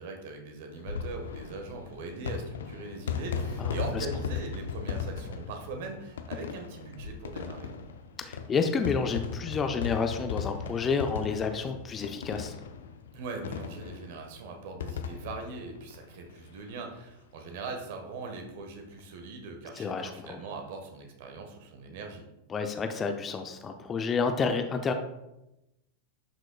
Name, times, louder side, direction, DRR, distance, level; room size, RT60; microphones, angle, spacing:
voice 1, 0.0-7.7 13.1-22.2, right 3 dB, 50° right, 4 dB, 1.3 m, -41 dB
sound 1, 0.7-16.8 17.1-17.2 17.4-17.5 18.8-19.0, left 6 dB, 65° left, 0.6 m, -37 dB
voice 2, 3.6-4.1 8.2-12.5 19.8-20.4 22.5-24.9, left 5 dB, 20° left, 6 dB, 0.6 m, -30 dB
11.0 x 6.0 x 2.3 m, 0.94 s
figure-of-eight pair, 90°, 0 cm